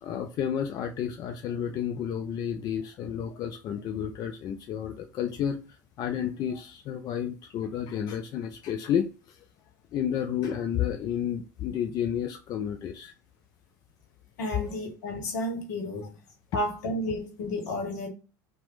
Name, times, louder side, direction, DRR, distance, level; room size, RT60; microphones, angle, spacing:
voice 1, 0.0-5.6 6.0-9.4 9.9-13.1, left 9 dB, 45° left, 0.4 m, -31 dB
voice 2, 14.4-16.2 16.5-18.1, left 1 dB, 70° left, 0.9 m, -32 dB
2.9 x 2.1 x 3.2 m
hypercardioid pair, 75°, 10 cm